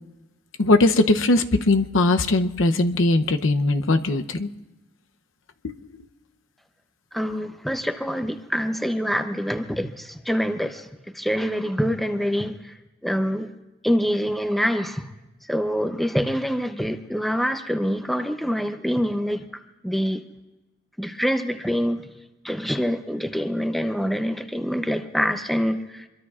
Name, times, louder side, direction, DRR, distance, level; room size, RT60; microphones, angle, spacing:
voice 1, 0.6-4.5 5.6-6.1, left 2 dB, 85° left, 8 dB, 0.7 m, -20 dB
voice 2, 7.1-10.9 11.1-12.8 13.0-13.5 13.8-15.1 15.5-19.4 19.8-20.2 21.0-22.1 22.4-26.1, equal, ahead, 7 dB, 0.7 m, -25 dB
26.0 x 22.5 x 2.5 m, 1.1 s
head